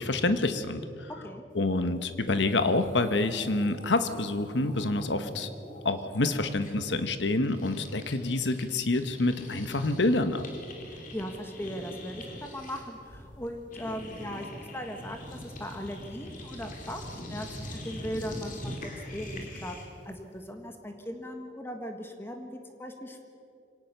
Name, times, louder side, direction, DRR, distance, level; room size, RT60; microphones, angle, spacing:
voice 1, 0.0-1.1 1.5-5.5 5.8-10.4, left 2 dB, 80° left, 10 dB, 1.3 m, -27 dB
sound 1, 2.2-2.3 2.4-8.7 8.9-20.0, left 1 dB, 50° left, 3.6 m, -43 dB
voice 2, 10.9-19.7 20.0-23.2, equal, 15° left, 5 dB, 1.5 m, -39 dB
24.5 x 18.5 x 6.8 m, 2.5 s
head